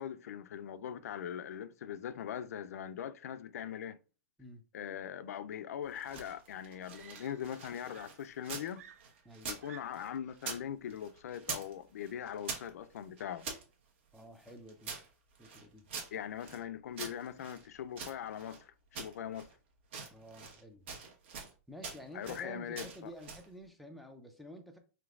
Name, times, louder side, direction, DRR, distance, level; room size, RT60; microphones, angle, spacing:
voice 1, 0.0-4.0 4.7-8.9 9.5-13.5 16.1-19.5 22.1-23.1, left 9 dB, 80° left, 0.4 m, -41 dB
sound 1, 5.8-8.7 9.0-10.6 10.9-11.7 12.0-13.6 14.1-16.6 16.9-18.6 18.9-19.5 19.8-20.6 20.9-21.5 21.8-22.4 22.7-23.5, right 5 dB, 50° right, 1.2 m, -45 dB
Screaming, 6.0-6.1 6.9-7.6 7.9-10.2 11.2-11.4, right 9 dB, 70° right, 0.4 m, -57 dB
voice 2, 9.2-9.5 14.1-14.9 15.4-15.9 20.1-20.9 21.7-24.8, equal, ahead, 0.4 m, -50 dB
5.1 x 3.2 x 2.4 m
supercardioid pair, 180°, 8 cm